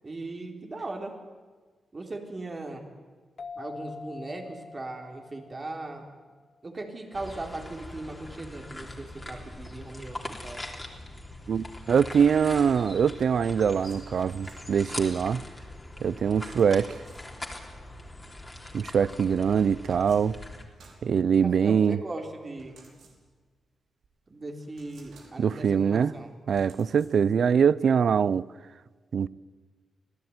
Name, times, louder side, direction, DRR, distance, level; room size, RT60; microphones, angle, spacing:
voice 1, 0.0-1.2 1.9-2.9 3.6-6.2 6.6-10.6 21.4-22.8 24.3-26.3, right 2 dB, 30° right, 3.9 m, -38 dB
sound 1, 3.4-6.7, left 4 dB, 50° left, 1.4 m, -45 dB
sound 2, 7.1-20.6, left 1 dB, 15° left, 3.6 m, -42 dB
voice 2, 11.5-15.4 16.0-17.0 18.7-20.4 21.0-22.0 25.4-26.1 26.5-28.4 29.1-29.3, right 7 dB, 60° right, 0.7 m, -23 dB
sound 3, 13.5-15.1 16.5-17.7 19.3-21.8 22.6-23.6 24.0-24.1 24.6-25.7 26.5-27.5, right 3 dB, 80° right, 5.3 m, -57 dB
26.5 x 17.0 x 9.7 m
wide cardioid pair, 115°, 0 cm